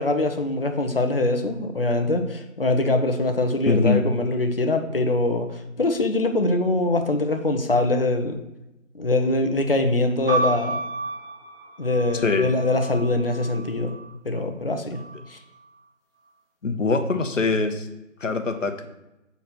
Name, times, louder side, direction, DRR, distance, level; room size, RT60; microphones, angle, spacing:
voice 1, 0.0-8.4 8.9-10.8 11.8-14.0 14.2-15.0 15.3-15.4, left 2 dB, 45° left, 6 dB, 0.6 m, -23 dB
voice 2, 3.7-4.0 12.2-12.5 16.6-17.9 18.2-18.9, left 4 dB, 65° left, 7 dB, 0.8 m, -23 dB
sound 1, 10.3-14.1 14.9-15.7, right 3 dB, 45° right, 1.5 m, -31 dB
5.9 x 4.1 x 4.2 m, 0.95 s
figure-of-eight pair, 170°, 40 cm